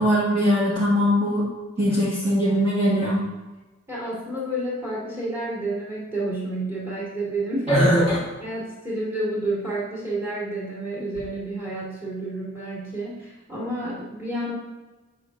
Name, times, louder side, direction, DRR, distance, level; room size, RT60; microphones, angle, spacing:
voice 1, 0.0-1.5 1.8-3.2 7.7-8.2, equal, 30° right, -11 dB, 1.6 m, -20 dB
voice 2, 3.9-7.7 8.4-14.5, right 1 dB, 10° right, -8 dB, 2.3 m, -30 dB
9.4 x 5.8 x 2.6 m, 1.2 s
head